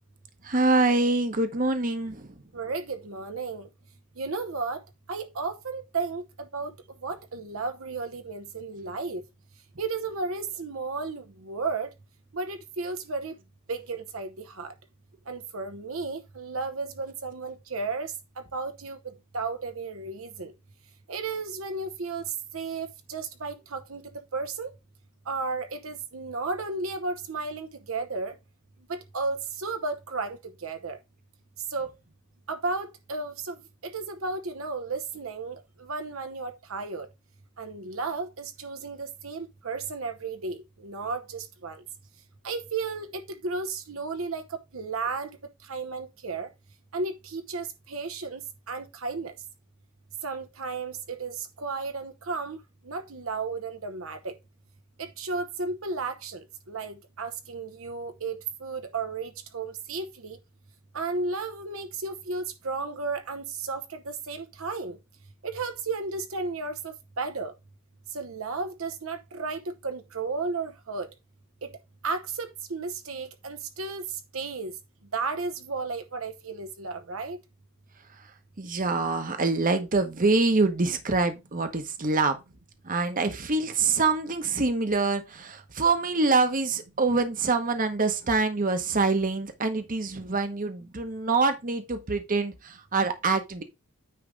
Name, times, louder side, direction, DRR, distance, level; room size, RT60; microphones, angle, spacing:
voice 1, 0.4-2.3 78.6-82.4 82.8-93.6, right 3 dB, 40° right, 1.1 m, -25 dB
voice 2, 2.5-3.7 4.2-4.8 5.1-6.7 7.0-9.2 9.8-11.9 12.3-13.3 13.7-14.7 15.3-18.1 18.5-20.5 21.1-24.0 24.3-24.7 25.3-28.3 28.9-31.0 31.7-31.9 32.5-37.1 37.6-41.8 42.4-44.4 44.7-45.3 45.7-46.5 46.9-48.4 48.7-49.3 50.2-52.6 52.8-54.3 55.0-60.4 60.9-65.0 65.4-67.5 68.1-71.1 71.6-71.7 72.0-74.1 74.3-74.7 75.1-77.4, right 4 dB, 65° right, 0.9 m, -33 dB
9.5 x 3.3 x 5.2 m
head